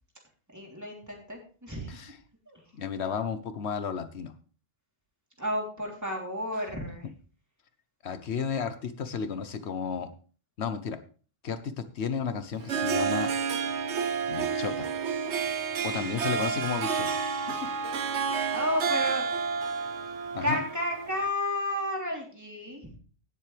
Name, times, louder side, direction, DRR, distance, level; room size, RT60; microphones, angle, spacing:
voice 1, 0.5-2.0 2.5-2.6 5.4-7.1 15.9-16.1 18.5-19.5 20.4-22.9, left 1 dB, 15° right, -1 dB, 3.3 m, -32 dB
voice 2, 2.7-4.3 8.0-10.1 10.6-11.0 11.4-13.3 14.3-14.9 15.8-17.7 20.3-20.6, left 6 dB, 75° left, 11 dB, 1.1 m, -33 dB
Harp, 12.5-21.3, right 5 dB, 85° right, 1.1 m, -30 dB
17.0 x 7.5 x 3.3 m, 0.39 s
omnidirectional pair, 1.1 m